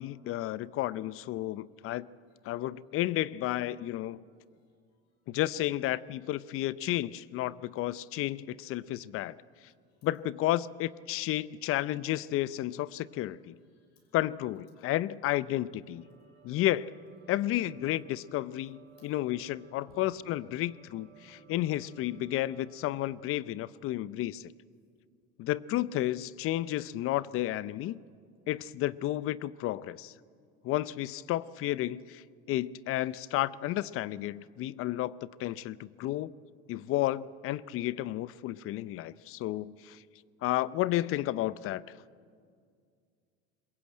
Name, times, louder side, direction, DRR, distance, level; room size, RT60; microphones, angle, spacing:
voice 1, 0.0-2.1 2.4-4.2 5.3-9.3 10.0-13.5 14.1-16.0 16.4-16.9 17.3-24.5 25.4-28.0 28.5-30.1 30.6-35.1 35.4-36.3 36.7-40.0 40.4-41.8, left 15 dB, 45° left, 18 dB, 0.7 m, -32 dB
voice 2, 2.0-2.7 4.5-5.4 9.6-10.1 11.1-11.2 13.0-14.2 14.7-15.0 15.9-16.7 18.9-19.1 19.9-20.0 21.2-21.4 31.4-31.5, left 5 dB, 85° left, 3 dB, 6.2 m, -72 dB
sound 1, 16.0-23.3, right 5 dB, 50° right, 3.9 m, -58 dB
21.5 x 21.5 x 8.8 m, 2.2 s
hypercardioid pair, 90°, 30 cm